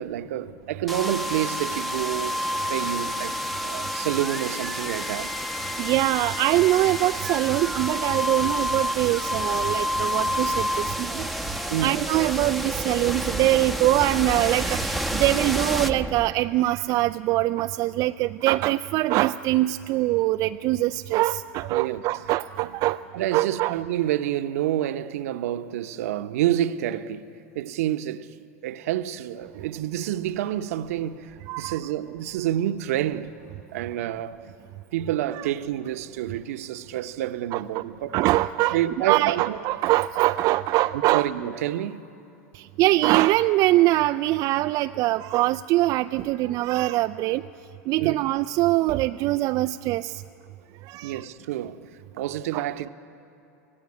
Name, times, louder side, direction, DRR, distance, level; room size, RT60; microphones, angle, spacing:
voice 1, 0.0-2.4 2.7-5.3 11.7-12.0 21.7-22.0 23.1-27.3 27.5-28.3 28.6-33.3 33.7-34.4 34.9-38.2 38.7-39.6 40.9-42.0 48.0-48.2 51.0-52.9, right 12 dB, 65° right, 1.0 m, -28 dB
sound 1, 0.9-16.7, equal, ahead, 1.0 m, -29 dB
voice 2, 5.8-11.3 11.8-23.0 23.3-23.7 31.5-31.8 35.4-35.5 37.5-37.8 38.1-41.3 42.5-47.4 47.9-50.2 50.8-51.2 52.5-52.6, right 17 dB, 45° right, 0.5 m, -23 dB
25.0 x 17.0 x 9.8 m
hypercardioid pair, 90°, 9 cm